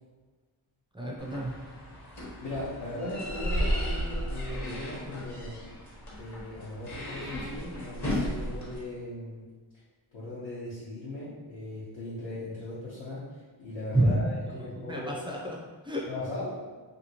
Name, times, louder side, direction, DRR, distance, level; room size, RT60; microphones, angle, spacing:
voice 1, 0.9-1.6 13.9-14.2 14.6-15.6 15.8-16.1, right 1 dB, 10° right, -2 dB, 0.4 m, -29 dB
sound 1, 1.2-8.8, equal, 35° left, 0.9 m, -34 dB
voice 2, 2.4-5.6 6.2-9.4 10.1-15.2 16.1-16.6, left 1 dB, 80° left, -12 dB, 1.1 m, -38 dB
2.8 x 2.7 x 2.8 m, 1.4 s
wide cardioid pair, 130°, 47 cm